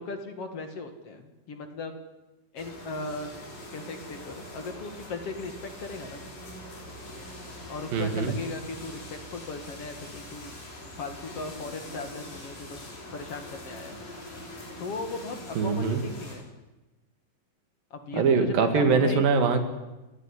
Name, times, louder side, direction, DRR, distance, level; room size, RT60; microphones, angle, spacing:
voice 1, 0.0-2.0 2.5-3.3 3.7-6.2 7.7-10.5 11.0-12.8 13.1-14.0 14.8-16.5 17.9-18.2 18.6-19.2, left 3 dB, 50° left, 7 dB, 2.7 m, -37 dB
sound 1, 2.6-16.4, left 1 dB, 85° left, 7.6 m, -43 dB
voice 2, 7.9-8.4 15.6-16.0 18.1-19.7, right 5 dB, 85° right, 7 dB, 3.9 m, -23 dB
29.5 x 14.0 x 10.0 m, 1.1 s
omnidirectional pair, 3.9 m